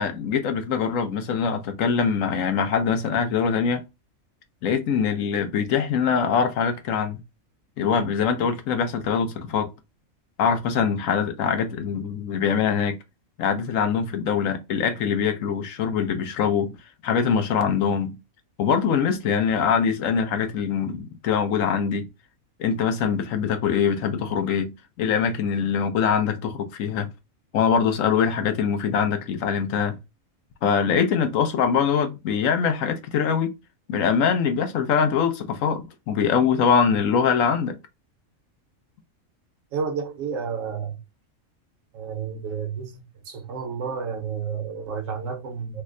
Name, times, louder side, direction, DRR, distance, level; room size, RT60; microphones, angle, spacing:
voice 1, 0.0-3.8 4.6-7.2 7.8-9.7 10.4-13.0 13.4-16.7 17.0-18.2 18.6-22.1 22.6-27.1 27.5-30.0 30.6-33.5 33.9-37.8, left 6 dB, 70° left, 1.0 m, -23 dB
voice 2, 39.7-41.0 41.9-45.8, right 6 dB, 65° right, 1.1 m, -31 dB
3.2 x 2.1 x 3.6 m
omnidirectional pair, 1.5 m